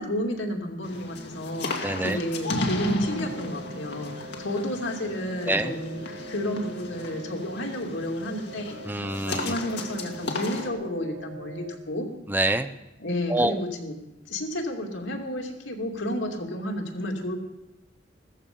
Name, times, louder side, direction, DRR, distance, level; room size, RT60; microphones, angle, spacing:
voice 1, 0.0-12.1 13.0-14.0 14.3-17.4, left 1 dB, 85° left, 1 dB, 2.7 m, -31 dB
sound 1, 0.8-10.7, left 2 dB, 60° left, 2.0 m, -34 dB
voice 2, 1.8-2.2 5.5-5.8 8.8-9.6 12.3-12.7 13.3-13.5, right 1 dB, 10° right, 9 dB, 0.6 m, -26 dB
sound 2, 3.0-11.8, right 2 dB, 85° right, 1.3 m, -43 dB
15.5 x 14.0 x 5.4 m, 0.98 s
head